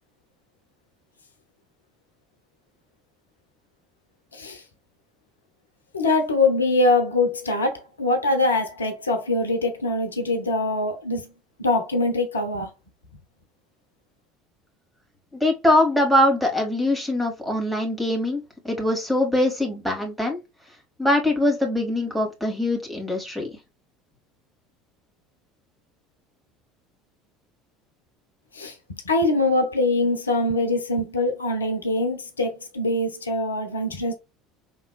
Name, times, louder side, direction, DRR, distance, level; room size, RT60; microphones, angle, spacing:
voice 1, 5.9-11.3 11.6-12.7 28.5-34.1, left 2 dB, 80° left, 0.8 m, -23 dB
voice 2, 15.3-20.4 21.0-23.5, left 1 dB, 5° right, 2.1 m, -22 dB
5.3 x 3.5 x 2.3 m
figure-of-eight pair, 65°, 0 cm